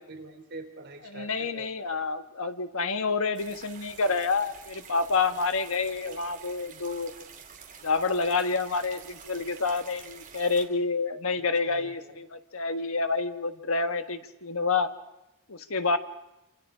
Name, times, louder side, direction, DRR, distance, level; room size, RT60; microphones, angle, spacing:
voice 1, 0.0-1.7 11.4-12.2, right 2 dB, 55° right, 3 dB, 3.4 m, -45 dB
voice 2, 1.0-7.1 7.8-14.9 15.5-16.0, left 4 dB, 75° left, 8 dB, 1.4 m, -28 dB
sound 1, 3.3-10.7, right 6 dB, 40° right, 3.4 m, -48 dB
27.0 x 27.0 x 5.0 m, 0.90 s
head